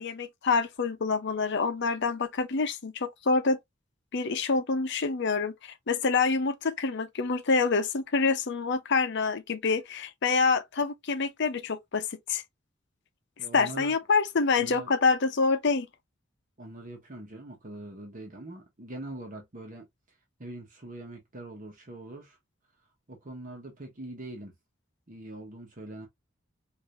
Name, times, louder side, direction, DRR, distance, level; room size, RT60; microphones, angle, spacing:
voice 1, 0.0-3.6 4.1-12.4 13.5-15.9, left 4 dB, 60° left, 0.7 m, -26 dB
voice 2, 13.4-14.0 14.5-14.9 16.6-22.4 23.1-24.5 25.1-26.1, right 1 dB, 45° right, 1.1 m, -43 dB
4.9 x 2.7 x 2.5 m
head